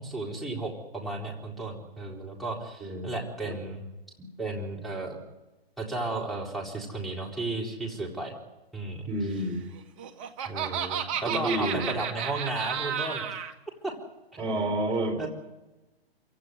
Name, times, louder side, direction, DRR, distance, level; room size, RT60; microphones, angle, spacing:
voice 1, 0.0-3.8 4.4-5.2 5.8-8.3 8.7-9.0 10.5-13.2 13.8-13.9 14.4-14.7 15.2-15.3, right 2 dB, ahead, -4 dB, 4.1 m, -34 dB
voice 2, 2.8-3.1 3.4-3.6 4.2-4.3 9.1-9.6 11.3-11.9 14.4-15.3, right 1 dB, 15° right, 2 dB, 4.0 m, -30 dB
Laughter, 9.8-13.5, right 8 dB, 30° right, 1.9 m, -32 dB
27.5 x 17.0 x 9.6 m, 1.0 s
figure-of-eight pair, 125°, 31 cm